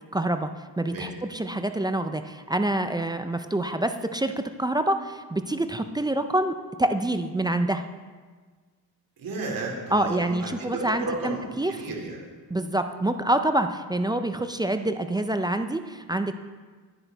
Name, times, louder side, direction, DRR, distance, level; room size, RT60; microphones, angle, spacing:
voice 1, 0.1-0.5 0.8-7.9 9.9-11.7 12.5-16.3, right 1 dB, 10° right, 8 dB, 0.4 m, -26 dB
voice 2, 9.2-12.2, right 2 dB, 50° right, 0 dB, 2.6 m, -33 dB
10.5 x 10.0 x 3.9 m, 1.4 s
cardioid pair, 115°, 42 cm